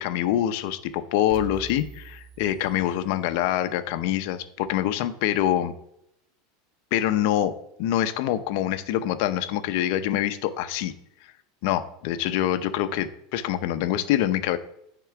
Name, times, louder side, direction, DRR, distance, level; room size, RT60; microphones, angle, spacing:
voice 1, 0.0-5.7 6.9-10.9 11.2-11.3 11.6-14.6, left 11 dB, 55° left, 11 dB, 0.6 m, -25 dB
sound 1, 1.3-3.3, right 6 dB, 45° right, 1.0 m, -43 dB
9.0 x 3.8 x 6.0 m, 0.76 s
supercardioid pair, 170°, 0 cm